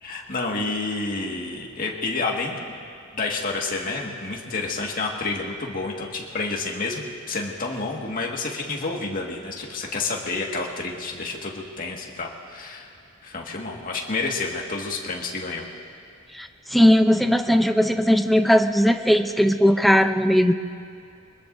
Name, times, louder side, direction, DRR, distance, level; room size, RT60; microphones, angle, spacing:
voice 1, 0.0-2.8 3.1-12.9 13.2-15.7, left 3 dB, 45° left, -1 dB, 1.9 m, -29 dB
voice 2, 16.3-20.5, equal, ahead, 6 dB, 0.6 m, -18 dB
24.0 x 20.5 x 2.7 m, 2.4 s
head